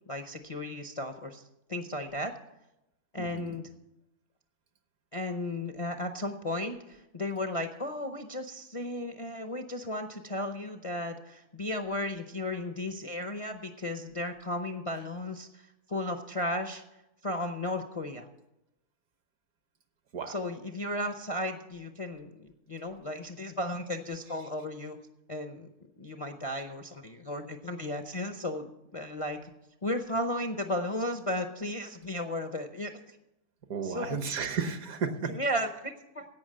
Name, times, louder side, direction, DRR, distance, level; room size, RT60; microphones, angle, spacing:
voice 1, 0.1-1.4 1.7-2.3 3.1-3.7 5.1-18.3 20.3-25.0 25.3-25.7 26.0-29.5 29.8-33.2 33.8-34.2 35.3-36.2, left 1 dB, 30° left, 6 dB, 0.6 m, -35 dB
voice 2, 3.2-3.6 20.1-20.4 33.7-35.4, right 5 dB, 65° right, 8 dB, 1.5 m, -33 dB
16.5 x 5.9 x 7.7 m, 0.91 s
omnidirectional pair, 1.6 m